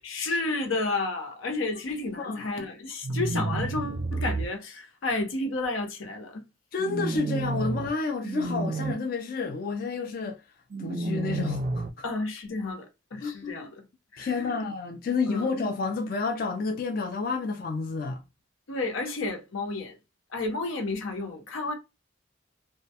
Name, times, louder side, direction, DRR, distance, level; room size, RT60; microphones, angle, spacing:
voice 1, 0.0-6.4 12.0-13.8 14.1-14.6 15.2-15.5 18.7-20.0 20.3-21.7, left 2 dB, 90° left, 0.7 m, -31 dB
sound 1, 3.0-4.5 6.8-7.9 8.2-8.9 10.7-11.9, right 3 dB, 40° right, 0.4 m, -30 dB
voice 2, 6.7-10.4 10.8-11.8 13.2-13.7 14.2-18.2, left 4 dB, 45° left, 0.3 m, -30 dB
2.2 x 2.1 x 2.7 m
head